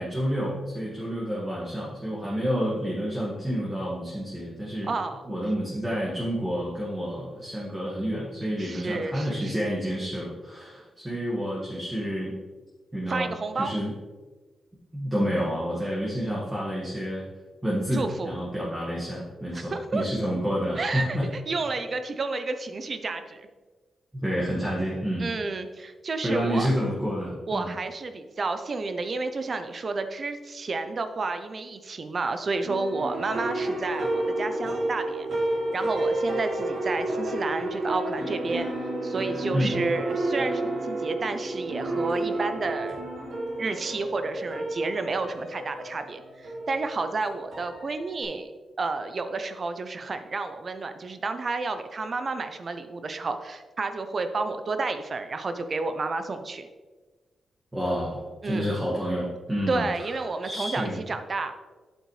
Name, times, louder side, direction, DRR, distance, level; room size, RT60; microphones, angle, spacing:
voice 1, 0.0-4.9 5.2-12.4 12.9-13.3 13.5-13.9 14.9-17.2 17.6-21.3 24.1-25.3 26.2-27.7 39.5-39.7 57.7-60.1 60.4-61.0, equal, 10° right, -6 dB, 1.7 m, -29 dB
voice 2, 4.9-5.2 8.6-9.7 13.1-13.7 17.9-18.4 19.5-20.1 20.8-23.5 25.2-26.7 27.5-35.3 35.7-38.7 39.0-43.0 43.6-48.5 48.8-56.7 58.4-58.8 59.7-61.5, right 3 dB, 40° right, 8 dB, 0.5 m, -31 dB
sound 1, 32.6-48.2, right 2 dB, 65° right, 2.2 m, -31 dB
8.2 x 8.0 x 3.2 m, 1.3 s
wide cardioid pair, 140°, 0 cm